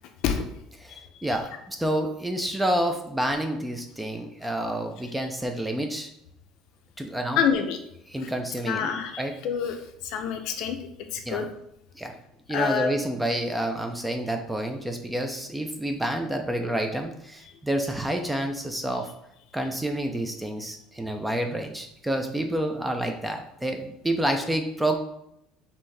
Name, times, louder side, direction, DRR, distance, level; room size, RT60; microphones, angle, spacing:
voice 1, 0.8-6.1 7.0-7.4 8.1-8.9 9.2-9.3 11.3-11.5 12.0-12.1 12.5-19.1 19.5-25.0, right 1 dB, 5° right, 4 dB, 0.3 m, -29 dB
voice 2, 7.4-7.8 8.2-8.3 8.6-9.8 10.0-10.8 11.1-11.5 12.5-13.0, left 7 dB, 50° left, 6 dB, 0.5 m, -27 dB
5.4 x 2.6 x 3.2 m, 0.79 s
cardioid pair, 175°, 0 cm